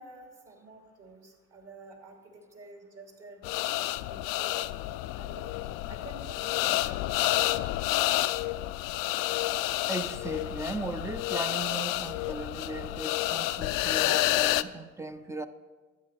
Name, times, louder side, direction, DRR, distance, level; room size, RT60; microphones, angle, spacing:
voice 1, 0.0-3.4 3.8-4.7 5.1-7.1, right 3 dB, 45° right, 2.8 m, -50 dB
sound 1, 3.4-14.6, left 17 dB, 70° left, 0.5 m, -29 dB
voice 2, 9.9-15.5, right 2 dB, 10° right, 0.5 m, -37 dB
12.0 x 8.5 x 4.3 m
hypercardioid pair, 65°, 34 cm